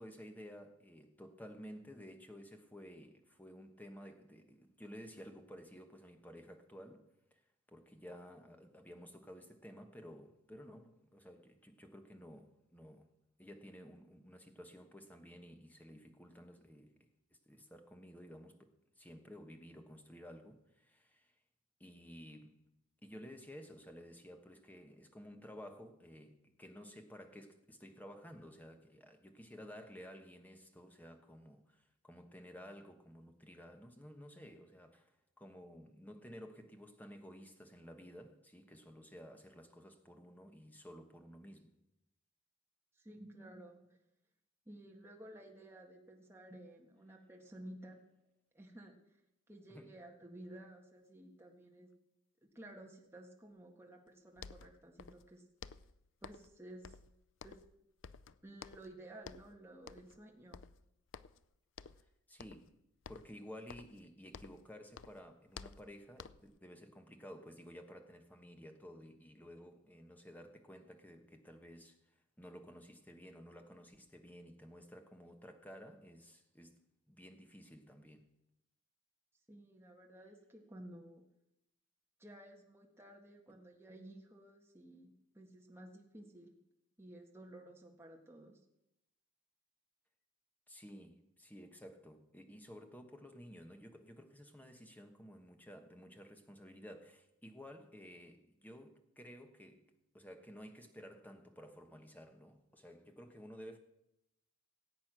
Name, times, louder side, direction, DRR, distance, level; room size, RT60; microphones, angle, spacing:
voice 1, 0.0-7.4 7.7-13.1 13.4-17.1 17.5-21.3 21.8-22.7 23.0-41.7 49.7-49.9 62.3-62.8 63.1-78.3 83.5-83.6 90.7-103.8, equal, 10° left, 1.2 m, -54 dB
voice 2, 43.0-43.9 44.7-48.0 48.5-48.9 49.5-51.9 52.6-55.4 56.2-57.0 57.4-57.6 58.4-60.6 79.5-81.2 82.2-86.5 87.0-88.6, right 1 dB, 10° right, 1.7 m, -54 dB
sound 1, 54.1-54.2 54.4-55.3 55.6-56.6 56.8-57.8 58.0-58.9 59.2-59.5 59.9-60.2 60.5-61.5 61.8-62.1 62.4-62.7 63.0-64.7 64.9-66.6, left 6 dB, 60° left, 0.4 m, -53 dB
18.0 x 8.5 x 6.1 m
head